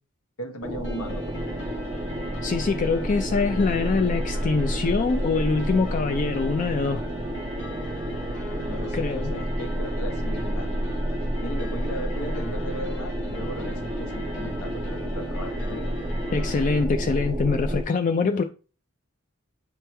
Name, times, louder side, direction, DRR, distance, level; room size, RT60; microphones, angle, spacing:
voice 1, 0.4-1.5 8.5-10.9 11.2-15.8, equal, 80° left, 1.1 m, -37 dB
sound 1, 0.6-17.8, equal, 20° right, 0.6 m, -30 dB
sound 2, 0.8-16.8, left 1 dB, 60° left, 1.3 m, -41 dB
voice 2, 2.4-7.0 8.9-9.3 16.3-18.4, left 4 dB, 35° left, 0.4 m, -24 dB
9.1 x 3.1 x 3.3 m
head